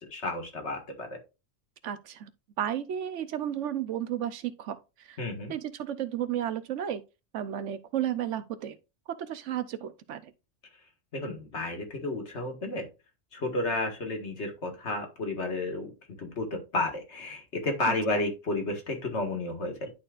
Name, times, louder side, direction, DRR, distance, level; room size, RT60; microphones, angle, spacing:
voice 1, 0.1-1.2 5.2-5.5 11.1-12.9 13.3-19.9, left 2 dB, 65° left, 1.9 m, -32 dB
voice 2, 1.8-2.3 2.6-5.2 5.5-7.0 7.3-8.8 9.1-10.3 17.8-17.9, right 10 dB, 75° right, 1.0 m, -33 dB
11.0 x 4.3 x 2.4 m
omnidirectional pair, 1.3 m